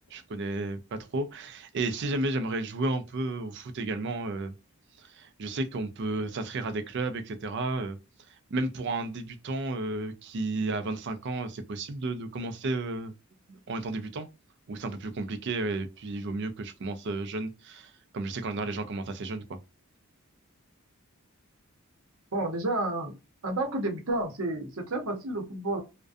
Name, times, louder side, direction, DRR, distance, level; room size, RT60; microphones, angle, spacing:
voice 1, 0.1-4.5 5.0-8.0 8.3-13.1 13.5-14.3 14.7-19.4, right 2 dB, 55° right, 0.4 m, -32 dB
voice 2, 22.3-23.2 23.4-25.8, right 2 dB, 75° right, 0.8 m, -30 dB
2.4 x 2.2 x 2.4 m
head